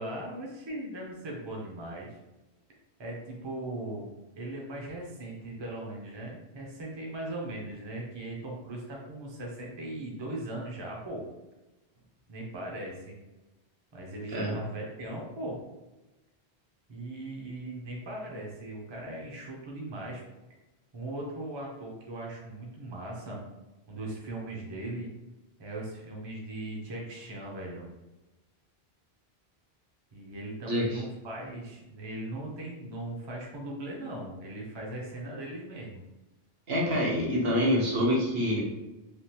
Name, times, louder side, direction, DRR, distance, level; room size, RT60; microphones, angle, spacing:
voice 1, 0.0-2.2 3.0-11.2 12.3-13.1 13.9-15.6 16.9-20.2 20.9-23.4 23.9-25.1 25.6-27.8 30.1-36.0, right 1 dB, 30° right, -2 dB, 0.6 m, -39 dB
voice 2, 30.7-31.0 36.7-38.6, equal, 70° right, -2 dB, 1.0 m, -26 dB
3.4 x 2.4 x 2.8 m, 1.0 s
omnidirectional pair, 1.1 m